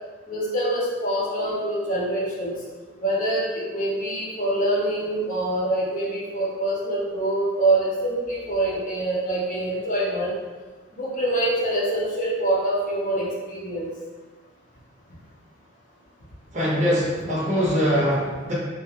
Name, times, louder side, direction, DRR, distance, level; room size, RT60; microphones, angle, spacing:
voice 1, 0.3-2.6 3.0-10.3 10.9-13.9, right 1 dB, 40° left, -5 dB, 0.6 m, -25 dB
voice 2, 16.5-18.5, equal, 35° right, -8 dB, 0.6 m, -22 dB
2.4 x 2.1 x 3.0 m, 1.4 s
head